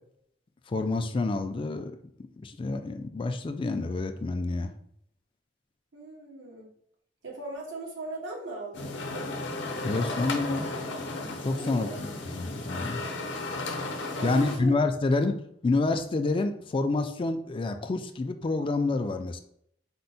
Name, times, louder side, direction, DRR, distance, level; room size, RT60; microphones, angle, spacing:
voice 1, 0.7-4.7 9.8-10.7 11.4-13.0 14.2-15.4 15.6-19.4, left 3 dB, 30° left, 8 dB, 0.3 m, -28 dB
voice 2, 5.9-6.7 7.2-9.3 11.5-12.0 14.0-14.8, right 2 dB, 90° right, -2 dB, 1.2 m, -39 dB
sound 1, 8.7-14.6, left 2 dB, 70° left, 0.6 m, -34 dB
4.4 x 2.1 x 4.0 m, 0.69 s
head